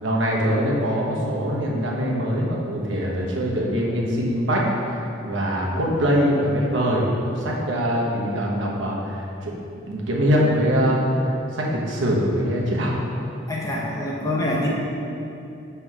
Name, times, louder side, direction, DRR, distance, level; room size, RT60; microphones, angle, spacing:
voice 1, 0.0-4.6 4.9-7.1 7.3-9.5 9.9-12.9, equal, 70° right, -3 dB, 1.0 m, -23 dB
voice 2, 5.6-5.9 13.5-14.7, left 1 dB, 15° left, -4 dB, 0.7 m, -26 dB
7.5 x 3.4 x 4.7 m, 2.8 s
head